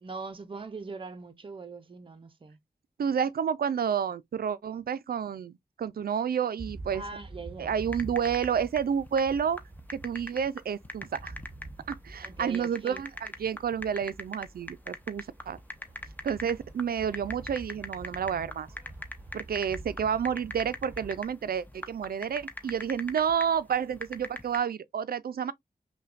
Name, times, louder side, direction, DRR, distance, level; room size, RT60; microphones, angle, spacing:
voice 1, 0.0-2.6 6.9-7.8 12.2-13.0, right 4 dB, 35° right, 0.6 m, -41 dB
voice 2, 3.0-7.0 7.6-9.6 9.9-11.3 11.9-15.6 16.2-18.7 19.3-25.5, right 7 dB, 85° right, 0.4 m, -30 dB
sound 1, 6.6-21.2, right 2 dB, 15° right, 1.0 m, -47 dB
sound 2, 7.8-24.6, left 1 dB, 10° left, 0.7 m, -42 dB
5.6 x 2.2 x 2.4 m
wide cardioid pair, 85°, 15 cm